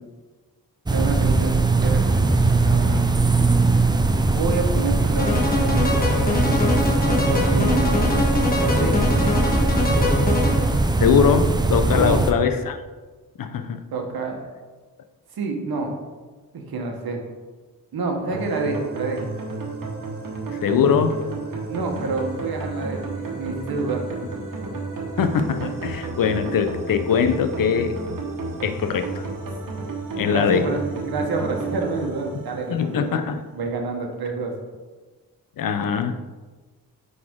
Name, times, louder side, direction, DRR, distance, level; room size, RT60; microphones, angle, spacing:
sound 1, 0.9-12.3, right 3 dB, 15° right, 0.3 m, -20 dB
voice 1, 0.9-2.2 2.5-3.1 4.3-5.9 6.3-6.5 7.0-7.9 8.8-9.0 11.9-12.2 13.9-14.4 15.3-15.9 16.5-17.2 17.9-19.2 21.7-24.0 30.3-33.2 33.5-34.5, right 3 dB, 90° right, 2 dB, 1.2 m, -28 dB
sound 2, 5.2-10.8, left 2 dB, 25° left, 1.4 m, -23 dB
voice 2, 11.0-12.8 13.4-13.8 20.5-21.2 25.2-28.0 28.6-29.3 30.2-30.7 32.7-33.4 35.6-36.2, left 7 dB, 65° left, 8 dB, 0.6 m, -21 dB
sound 3, 18.3-33.4, right 3 dB, 60° right, 1.3 m, -32 dB
9.3 x 4.2 x 3.7 m, 1.3 s
wide cardioid pair, 175°, 36 cm